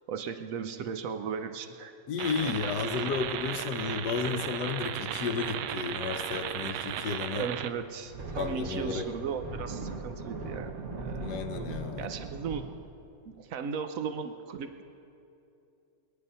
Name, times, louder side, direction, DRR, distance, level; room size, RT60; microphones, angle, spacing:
voice 1, 0.1-1.9 2.4-2.6 7.3-11.3 12.0-12.7 13.3-14.8, right 6 dB, 70° right, 8 dB, 0.8 m, -36 dB
voice 2, 2.1-7.5 8.4-9.1 11.2-12.1, left 5 dB, 65° left, 7 dB, 1.2 m, -33 dB
sound 1, 2.2-7.7, right 10 dB, 85° right, 1.4 m, -35 dB
sound 2, 2.4-4.1 7.9-12.8, right 3 dB, 45° right, 1.7 m, -40 dB
21.5 x 10.0 x 5.5 m, 2.7 s
omnidirectional pair, 2.3 m